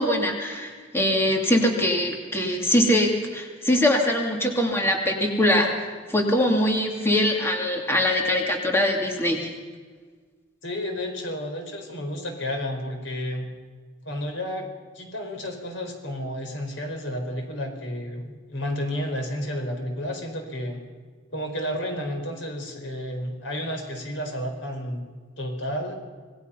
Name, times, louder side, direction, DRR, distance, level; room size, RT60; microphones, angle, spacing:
voice 1, 0.0-9.5, left 1 dB, 15° left, 1 dB, 2.6 m, -22 dB
voice 2, 10.6-13.5 14.0-14.7 14.9-20.8 21.3-25.0 25.4-26.0, equal, 85° left, 4 dB, 4.2 m, -31 dB
26.0 x 19.5 x 5.7 m, 1.5 s
head